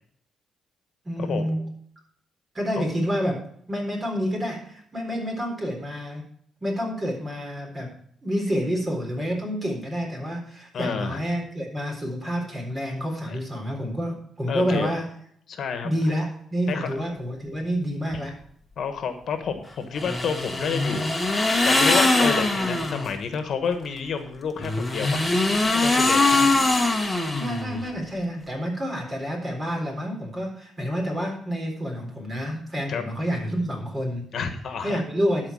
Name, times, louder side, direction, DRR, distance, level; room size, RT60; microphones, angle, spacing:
voice 1, 1.0-1.6 2.5-3.4 3.7-6.2 6.6-8.0 8.2-15.0 15.8-18.3 26.3-26.5 27.4-34.3 34.8-35.5, equal, 25° right, 1 dB, 3.9 m, -28 dB
voice 2, 10.7-11.2 13.3-13.4 14.5-14.9 15.5-15.9 16.7-16.9 18.8-21.1 21.6-26.2 32.9-33.0 34.3-35.0, left 6 dB, 60° left, 8 dB, 1.3 m, -29 dB
sound 1, 20.0-23.1 24.6-27.9, left 2 dB, 10° left, 1.5 m, -22 dB
12.0 x 4.8 x 6.2 m, 0.66 s
cardioid pair, 90°, 0 cm